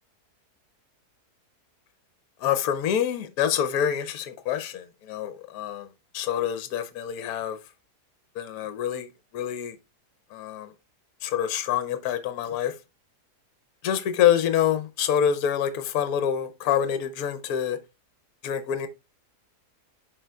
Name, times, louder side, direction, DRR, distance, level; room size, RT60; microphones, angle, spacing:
voice 1, 2.4-5.9 6.1-7.6 8.4-9.1 9.3-9.7 10.3-10.7 11.2-12.7 13.8-17.8 18.4-18.9, left 9 dB, 70° left, 1.1 m, -26 dB
11.0 x 3.9 x 2.3 m
omnidirectional pair, 1.7 m